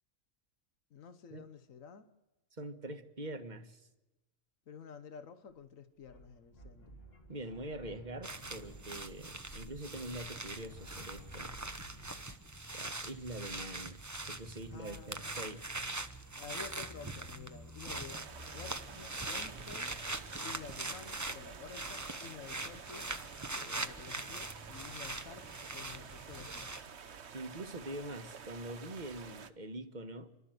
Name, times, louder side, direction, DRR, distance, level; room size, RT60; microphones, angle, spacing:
voice 1, 0.9-2.1 4.7-7.0 14.7-15.5 16.4-18.2 18.5-19.9 20.4-23.1 23.5-26.6, left 6 dB, 85° left, 1.6 m, -51 dB
voice 2, 2.6-3.9 7.3-11.6 12.7-15.7 27.3-30.3, right 1 dB, 35° right, 1.5 m, -44 dB
sound 1, 5.5-5.6 6.0-12.4, equal, 50° left, 3.1 m, -54 dB
sound 2, 8.2-26.8, right 2 dB, 15° right, 0.8 m, -42 dB
sound 3, 18.1-29.5, right 6 dB, 55° right, 1.3 m, -50 dB
29.5 x 12.5 x 7.9 m
omnidirectional pair, 1.4 m